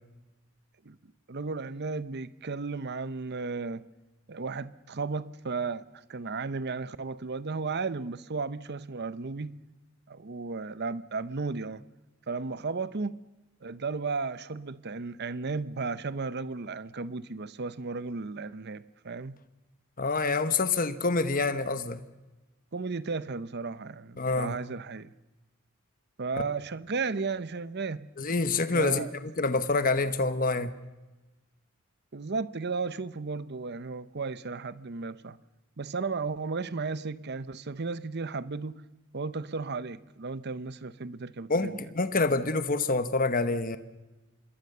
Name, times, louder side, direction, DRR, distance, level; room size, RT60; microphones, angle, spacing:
voice 1, 1.3-3.8 4.3-9.6 10.1-11.8 12.3-13.2 13.6-19.4 22.7-25.1 26.2-28.0 28.7-29.1 32.1-35.4 35.8-38.8 39.1-41.8, right 4 dB, 50° right, 0.8 m, -34 dB
voice 2, 20.0-22.0 24.2-24.6 28.2-30.7 41.5-43.8, left 3 dB, 40° left, 1.0 m, -27 dB
26.5 x 21.0 x 6.8 m
head